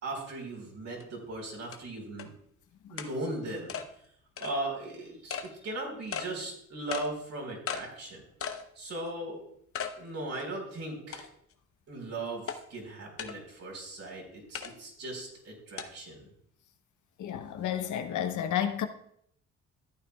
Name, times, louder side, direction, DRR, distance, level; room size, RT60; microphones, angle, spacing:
voice 1, 0.0-2.3 2.9-3.8 4.4-8.2 8.8-9.4 9.9-11.3 11.9-16.2, right 2 dB, 60° right, 4.3 m, -38 dB
sound 1, 1.0-1.1 1.7-1.8 2.2-2.3 3.0-3.1 3.7-3.9 4.4-4.5 5.3-5.5 6.1-6.3 6.9-7.1 7.7-7.8 8.4-8.6 9.1-9.2 9.7-10.0 10.4-10.5 11.1-11.5 12.5-12.6 13.2-13.4 14.5-14.7 15.8-15.9, left 7 dB, 50° left, 0.9 m, -36 dB
voice 2, 17.2-18.9, left 9 dB, 75° left, 0.9 m, -31 dB
14.0 x 9.0 x 2.3 m
cardioid pair, 90°, 30 cm